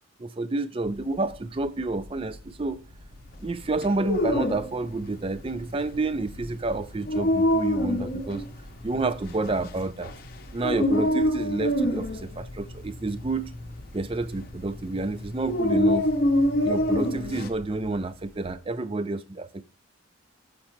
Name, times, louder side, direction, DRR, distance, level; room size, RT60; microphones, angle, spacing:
voice 1, 0.2-2.8 3.4-8.4 8.8-10.1 10.5-13.5 13.9-16.1 16.6-19.7, right 2 dB, 25° right, 0.4 m, -29 dB
sound 1, 0.8-18.5, left 1 dB, 85° right, 2.9 m, -48 dB
Dog, 3.8-17.5, left 1 dB, 45° left, 0.7 m, -27 dB
6.5 x 6.0 x 4.5 m
head